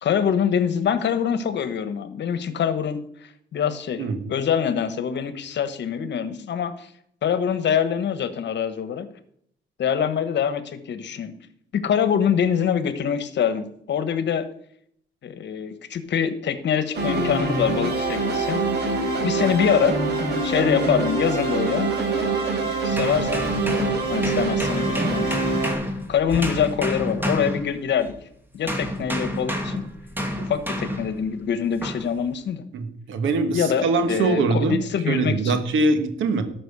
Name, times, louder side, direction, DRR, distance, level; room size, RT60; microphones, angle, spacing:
voice 1, 0.0-6.9 7.2-9.1 9.8-11.3 11.7-14.5 15.2-18.6 19.2-20.0 20.4-21.9 22.6-25.4 26.1-28.1 28.5-29.8 30.5-32.6 33.5-35.3, left 8 dB, 60° left, 12 dB, 1.3 m, -24 dB
sound 1, 16.9-25.7, right 3 dB, 55° right, 4.3 m, -24 dB
sound 2, 22.9-28.2 28.7-31.2 31.8-32.1, equal, 10° right, 2.4 m, -29 dB
voice 2, 32.7-36.4, right 3 dB, 80° right, 8 dB, 1.7 m, -23 dB
12.5 x 6.2 x 6.9 m, 0.69 s
cardioid pair, 90°, 20 cm